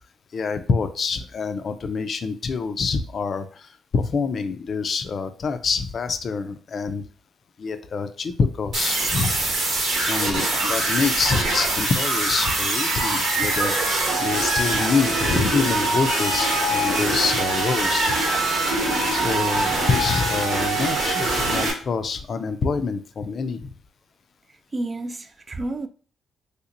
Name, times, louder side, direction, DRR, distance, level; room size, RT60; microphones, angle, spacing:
voice 1, 0.3-7.0 7.6-9.5 10.1-18.2 19.1-23.7, left 5 dB, 50° left, 0.4 m, -26 dB
sound 1, 8.7-21.7, right 2 dB, 75° right, 1.1 m, -23 dB
voice 2, 24.7-25.9, right 2 dB, 30° right, 0.3 m, -30 dB
3.3 x 2.9 x 2.5 m
cardioid pair, 90°, 0 cm